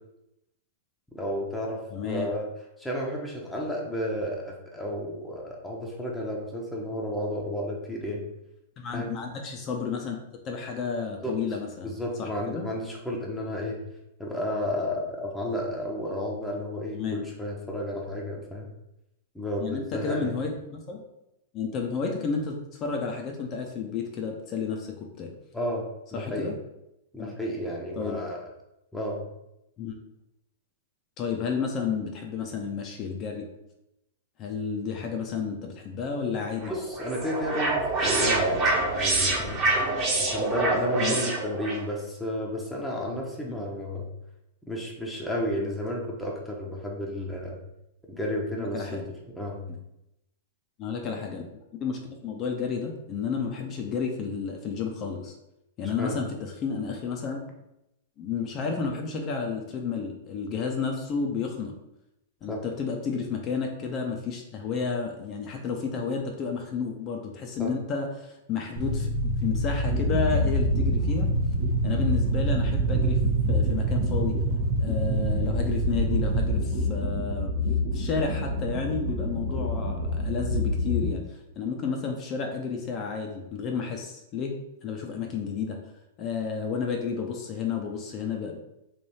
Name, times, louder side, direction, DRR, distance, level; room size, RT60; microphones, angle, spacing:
voice 1, 1.1-2.5 2.8-8.2 8.9-9.1 11.2-11.4 11.8-13.8 14.2-18.7 19.3-20.3 25.5-25.8 26.1-26.5 27.1-28.4 28.9-29.2 36.7-39.6 40.2-44.1 44.7-47.6 48.1-49.0 49.4-49.6 55.8-56.2 62.5-62.6 67.6-67.7, equal, 5° left, -2 dB, 0.8 m, -32 dB
voice 2, 1.9-2.3 8.8-10.2 10.4-12.7 16.9-17.2 19.6-21.0 21.5-25.3 26.1-26.5 27.2-27.3 28.0-28.2 29.8-30.0 31.2-33.5 34.4-36.7 41.0-41.1 43.4-43.6 48.6-49.0 50.8-51.4 51.7-55.3 55.8-57.4 58.2-61.7 62.4-69.1 69.4-71.3 71.8-73.2 73.5-74.3 74.8-77.5 77.9-81.2 81.6-84.5 84.8-85.8 86.2-88.6, left 5 dB, 35° left, 2 dB, 0.6 m, -31 dB
sound 1, 36.6-41.8, right 2 dB, 30° right, 1.3 m, -26 dB
sound 2, 68.8-76.5, right 3 dB, 50° right, 0.9 m, -27 dB
sound 3, 69.9-81.1, left 2 dB, 70° right, 1.2 m, -29 dB
3.3 x 2.6 x 4.2 m, 0.86 s
hypercardioid pair, 115°, 0 cm